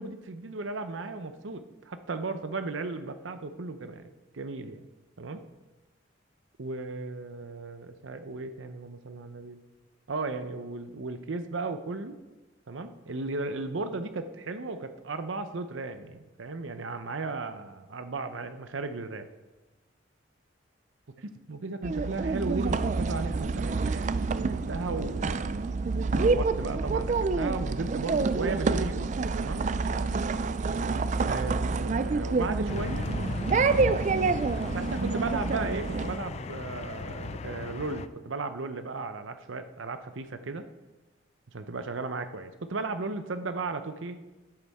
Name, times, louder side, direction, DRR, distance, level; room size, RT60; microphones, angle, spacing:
voice 1, 0.0-4.1 4.3-4.8 5.2-5.4 6.6-9.6 10.1-12.2 12.7-19.3 21.2-25.7 26.1-29.1 29.3-29.6 31.3-31.5 31.8-33.1 33.5-33.9 34.6-40.6 41.5-44.2, right 3 dB, 85° right, 9 dB, 0.7 m, -35 dB
sound 1, 21.8-36.2, right 4 dB, 40° right, 0.4 m, -28 dB
sound 2, 32.7-38.1, left 4 dB, 35° left, 0.3 m, -37 dB
11.5 x 8.3 x 3.6 m, 1.1 s
head